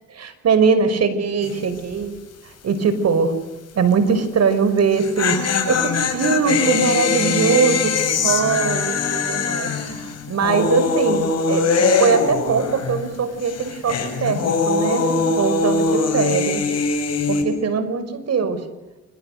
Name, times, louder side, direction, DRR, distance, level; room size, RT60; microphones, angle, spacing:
voice 1, 0.1-2.2 2.4-3.3 3.7-16.7 17.3-18.6, right 5 dB, 55° right, 11 dB, 5.6 m, -21 dB
sound 1, 1.4-1.8 2.0-2.1 4.8-13.1 13.4-17.4, left 4 dB, 55° left, 7.2 m, -22 dB
29.5 x 26.5 x 6.8 m, 1.1 s
cardioid pair, 90°, 30 cm